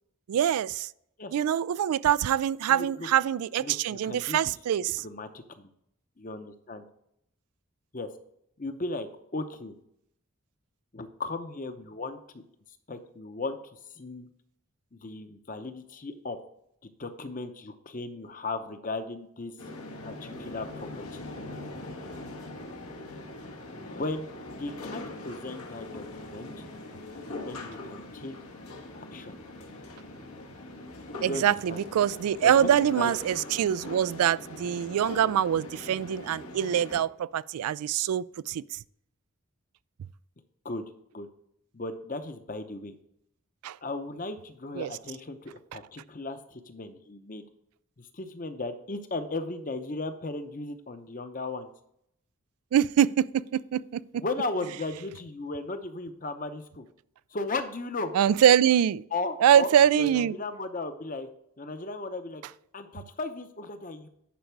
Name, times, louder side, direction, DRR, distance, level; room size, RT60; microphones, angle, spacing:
voice 1, 0.3-0.9 1.3-5.0 31.2-38.6 43.6-43.8 44.8-44.9 52.7-54.2 58.1-59.0 59.4-60.3, right 9 dB, 85° right, 0.3 m, -24 dB
voice 2, 2.7-3.1 3.6-4.5 5.0-5.7 6.2-6.8 7.9-8.1 8.6-9.8 10.9-12.2 12.9-14.3 14.9-16.4 16.8-19.5 20.0-21.2 23.7-24.3 24.6-26.5 27.4-28.3 28.9-29.3 31.2-31.8 32.4-33.1 40.6-40.8 41.1-41.3 41.7-43.0 43.8-47.4 48.0-51.7 54.1-56.9 57.3-58.1 59.1-61.3 61.6-62.4 62.7-64.1, left 2 dB, 35° left, 0.8 m, -36 dB
sound 1, 19.6-37.0, left 2 dB, 85° left, 1.5 m, -42 dB
10.0 x 5.2 x 4.6 m
head